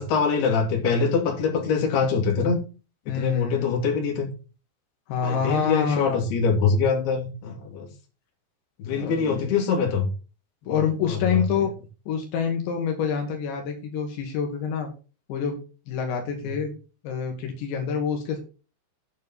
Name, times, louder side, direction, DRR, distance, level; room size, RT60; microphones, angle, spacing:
voice 1, 0.0-2.6 3.2-4.3 5.2-7.9 8.8-10.1 10.6-11.2, left 5 dB, 65° left, 1 dB, 4.6 m, -24 dB
voice 2, 3.1-3.8 5.1-6.2 8.9-9.6 10.7-11.7 12.1-14.9 15.3-15.6 15.9-16.7 17.0-18.4, left 6 dB, 90° left, 2 dB, 4.1 m, -27 dB
9.7 x 8.6 x 4.2 m, 0.34 s
omnidirectional pair, 5.0 m